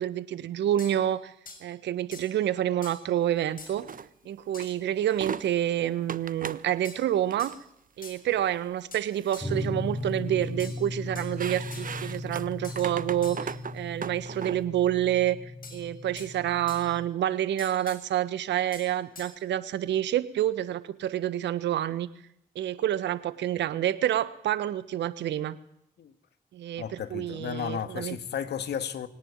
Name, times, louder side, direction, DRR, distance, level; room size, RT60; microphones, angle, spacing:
voice 1, 0.0-1.3 1.6-3.8 4.2-7.5 8.0-22.1 22.5-25.6 26.5-28.2, right 11 dB, 70° right, 1.4 m, -28 dB
sound 1, 0.8-1.0 1.5-1.7 2.1-2.4 2.8-3.1 3.6-3.8 4.5-4.8 5.0-5.6 6.8-7.1 7.4-7.6 8.0-8.2 8.9-9.6 10.6-11.4 11.7-12.0 12.6-12.9 13.2-13.6 15.6-16.3 16.7-17.0 17.6-18.1 18.7-19.4, left 4 dB, 50° left, 6.5 m, -46 dB
sound 2, 3.7-4.1 4.6-4.7 5.1-5.4 6.1-6.7 7.2-7.6 8.3-8.5 9.0-9.7 10.0-10.7 11.1-14.6, right 6 dB, 45° right, 1.3 m, -38 dB
sound 3, 9.4-17.1, left 2 dB, 20° left, 3.8 m, -37 dB
voice 2, 26.8-29.1, left 8 dB, 65° left, 1.9 m, -33 dB
22.5 x 18.0 x 8.9 m
hypercardioid pair, 40°, 19 cm